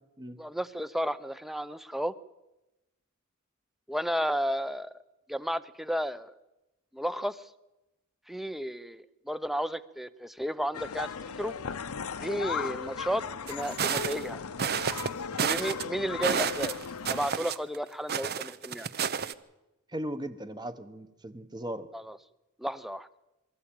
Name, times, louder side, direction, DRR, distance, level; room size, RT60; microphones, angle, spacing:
voice 1, 0.4-2.1 3.9-4.9 5.3-6.3 6.9-7.4 8.3-11.1 11.4-11.5 12.2-14.4 15.3-16.7 17.1-18.9 21.9-22.2 22.6-23.1, equal, ahead, 15 dB, 0.7 m, -32 dB
sound 1, 10.7-17.3, left 6 dB, 70° left, 0.8 m, -37 dB
sound 2, 13.5-14.2 14.6-15.1 15.4-15.8 16.2-17.8 18.1-19.3, right 7 dB, 45° right, 0.8 m, -30 dB
voice 2, 19.9-21.9, right 1 dB, 20° right, 10 dB, 1.1 m, -37 dB
23.5 x 14.0 x 8.9 m, 0.99 s
head